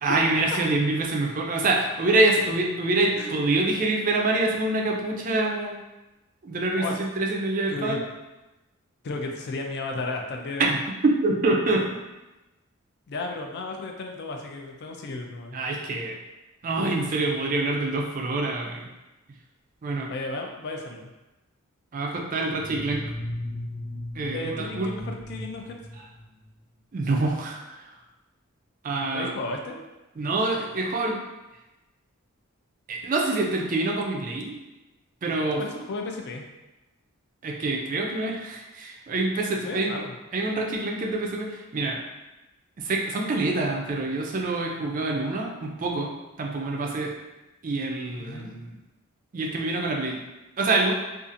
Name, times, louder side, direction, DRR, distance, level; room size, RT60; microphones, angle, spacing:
voice 1, 0.0-5.8 6.4-8.0 10.7-10.8 11.0-11.9 15.5-16.2 16.6-18.9 19.8-20.1 21.9-23.1 24.2-24.9 26.9-27.9 28.8-29.3 30.2-31.2 32.9-34.6 35.2-35.6 37.4-40.0 40.3-42.0 42.8-47.1 47.6-48.7 49.3-50.2 50.6-50.9, right 2 dB, 40° right, 0 dB, 0.4 m, -26 dB
voice 2, 7.7-8.0 9.0-10.7 13.1-15.6 20.1-21.1 24.3-25.8 29.1-29.8 35.5-36.4 39.6-40.1 48.3-48.5, left 2 dB, 50° left, 2 dB, 0.4 m, -33 dB
sound 1, 22.5-26.6, left 1 dB, 20° left, 0.9 m, -36 dB
2.6 x 2.4 x 2.5 m, 1.0 s
head